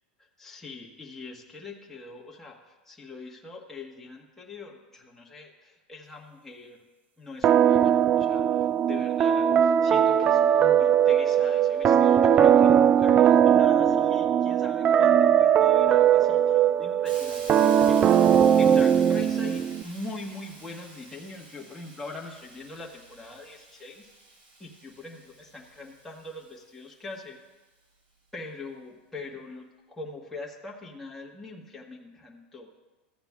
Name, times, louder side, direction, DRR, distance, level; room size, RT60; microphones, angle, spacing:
voice 1, 0.2-6.9 7.2-18.3 18.6-24.1 24.6-27.4 28.3-32.7, left 2 dB, 5° left, -3 dB, 1.3 m, -42 dB
sound 1, 7.4-19.8, right 9 dB, 25° right, 0.3 m, -20 dB
Hiss, 17.1-26.9, right 2 dB, 70° right, 3.3 m, -48 dB
15.0 x 8.7 x 2.3 m, 1.2 s
supercardioid pair, 125°, 6 cm